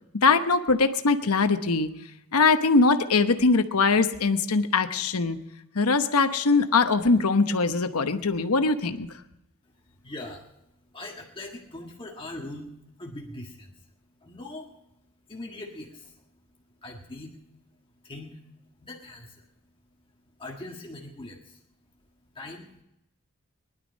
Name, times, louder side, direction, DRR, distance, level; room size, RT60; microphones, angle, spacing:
voice 1, 0.2-1.9 2.3-5.4 5.7-9.1, left 4 dB, 85° left, 8 dB, 1.0 m, -22 dB
voice 2, 10.0-10.5 10.9-12.7 13.0-13.9 14.2-14.7 15.3-16.2 16.8-17.3 18.0-18.4 18.8-19.5 20.4-21.6 22.3-22.8, left 2 dB, 25° left, 0 dB, 1.6 m, -41 dB
19.5 x 11.5 x 5.2 m, 0.86 s
head